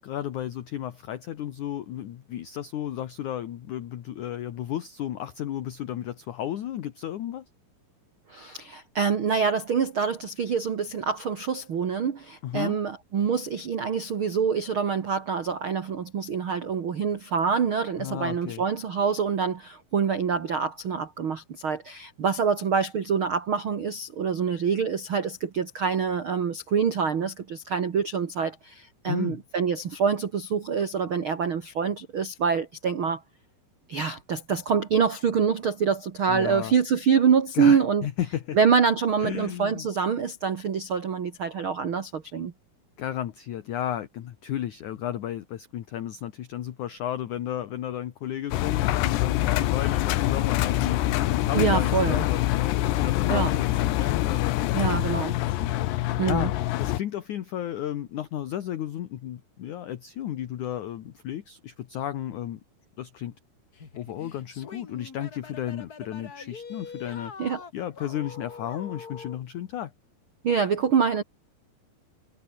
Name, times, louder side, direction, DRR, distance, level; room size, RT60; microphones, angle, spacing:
voice 1, 0.0-7.4 12.4-12.8 18.0-18.6 29.1-29.4 36.3-36.7 37.5-38.6 39.2-39.9 43.0-62.6 63.0-63.3 64.0-67.3 67.7-69.9, left 11 dB, 60° left, 2.2 m, -33 dB
voice 2, 8.3-33.2 33.9-38.1 38.5-42.5 51.5-52.2 53.3-53.5 54.7-55.4 56.2-56.5 67.4-67.6 70.4-71.2, right 6 dB, 80° right, 1.1 m, -26 dB
Engine, 48.5-57.0, left 15 dB, 80° left, 3.3 m, -25 dB
sound 1, 63.7-69.4, left 5 dB, 35° left, 1.5 m, -43 dB
omnidirectional pair, 5.0 m